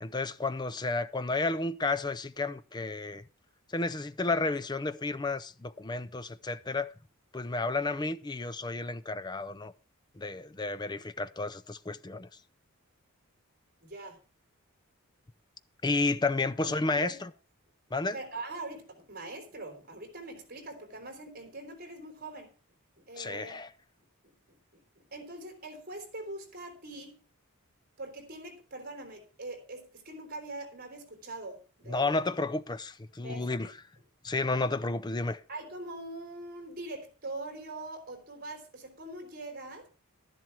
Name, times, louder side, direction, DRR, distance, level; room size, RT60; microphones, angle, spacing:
voice 1, 0.0-3.2 3.7-6.9 7.3-9.7 10.2-12.3 15.8-17.3 17.9-18.2 23.2-23.7 31.9-33.7 34.2-35.4, left 3 dB, 20° left, 0.5 m, -31 dB
voice 2, 13.8-14.2 16.6-17.2 18.1-22.5 23.0-23.6 24.2-27.2 28.0-32.2 33.2-33.5 35.5-39.9, right 2 dB, 40° right, 3.6 m, -43 dB
12.0 x 11.0 x 4.6 m
head